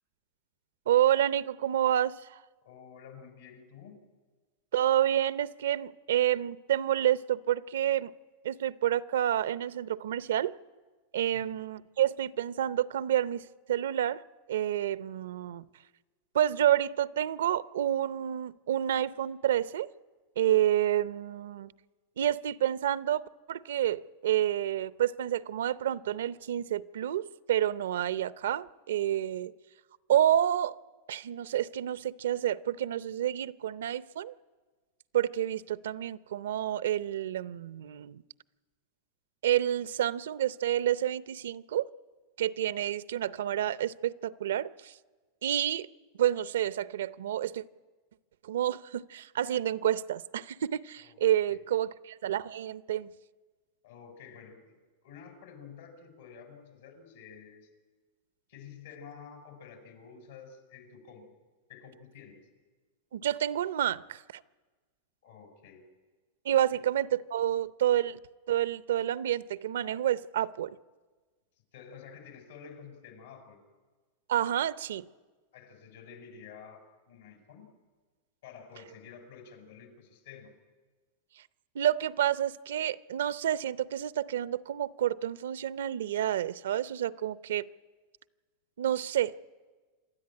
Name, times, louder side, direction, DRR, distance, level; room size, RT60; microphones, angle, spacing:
voice 1, 0.9-2.2 4.7-8.1 8.4-10.5 11.1-14.2 14.5-15.7 16.3-19.9 20.4-21.7 22.2-29.5 30.1-30.7 31.1-34.3 35.1-38.2 39.4-41.9 42.4-44.9 45.4-45.9 46.2-47.6 48.4-53.1 63.1-64.4 66.4-68.2 68.5-70.8 74.3-75.0 81.7-87.7 88.8-89.4, right 11 dB, 90° right, 17 dB, 0.6 m, -29 dB
voice 2, 2.6-4.0 11.3-11.6 51.0-51.2 51.5-51.6 53.8-54.8 55.0-57.7 58.5-61.3 61.7-62.5 65.2-65.8 66.7-66.8 71.7-73.6 75.5-77.7 78.4-80.5, left 6 dB, 85° left, 5 dB, 5.4 m, -50 dB
27.0 x 13.0 x 9.8 m, 1.4 s
supercardioid pair, 135°, 0 cm